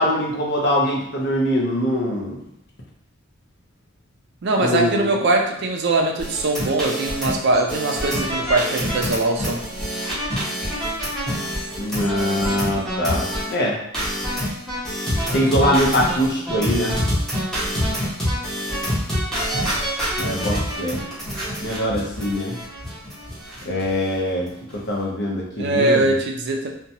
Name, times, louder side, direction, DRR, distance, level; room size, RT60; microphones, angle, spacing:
voice 1, 0.0-2.4 4.6-5.1 11.8-13.8 15.3-17.0 20.2-21.0 21.6-22.6 23.6-24.5 24.9-26.1, left 1 dB, 55° left, -2 dB, 0.7 m, -22 dB
voice 2, 4.4-9.6 25.6-26.7, right 2 dB, 55° right, 2 dB, 0.4 m, -21 dB
sound 1, 6.2-13.5 13.9-23.9 24.1-24.2 24.5-24.7, equal, ahead, 0.8 m, -26 dB
2.8 x 2.2 x 2.7 m, 0.72 s
head